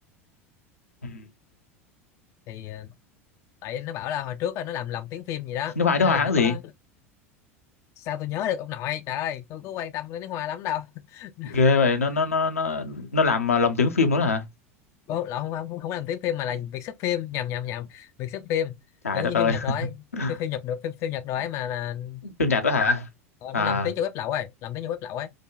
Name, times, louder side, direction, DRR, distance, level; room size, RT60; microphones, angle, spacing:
voice 1, 2.5-2.9 3.6-6.6 8.0-11.6 15.1-18.7 19.1-20.0 20.3-22.2 23.4-25.3, left 10 dB, 40° left, 0.4 m, -31 dB
voice 2, 5.8-6.6 11.4-14.4 19.0-19.6 20.2-20.4 22.2-23.1 23.5-23.9, left 4 dB, 80° left, 0.7 m, -22 dB
4.9 x 2.2 x 2.2 m
figure-of-eight pair, 75°, 8 cm